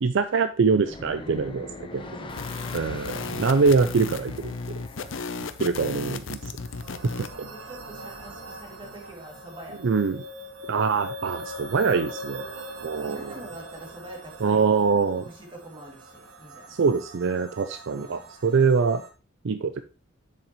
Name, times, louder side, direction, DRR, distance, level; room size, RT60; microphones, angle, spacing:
voice 1, 0.0-1.7 1.9-2.0 2.7-4.5 5.6-6.5 7.0-7.1 7.4-7.5 9.8-10.2 10.7-12.5 12.8-13.4 14.4-15.3 16.7-19.0 19.4-19.8, right 5 dB, 65° right, 0.5 m, -24 dB
sound 1, 0.7-5.8, left 2 dB, 25° left, 0.8 m, -42 dB
voice 2, 1.9-2.6 4.9-5.6 7.5-10.1 13.0-14.6 15.2-16.8 17.9-18.3, right 1 dB, 25° right, 2.6 m, -45 dB
sound 2, 2.3-7.3, left 4 dB, 70° left, 0.7 m, -35 dB
sound 3, 6.3-19.1, right 1 dB, 85° right, 1.6 m, -42 dB
7.5 x 7.3 x 3.1 m
head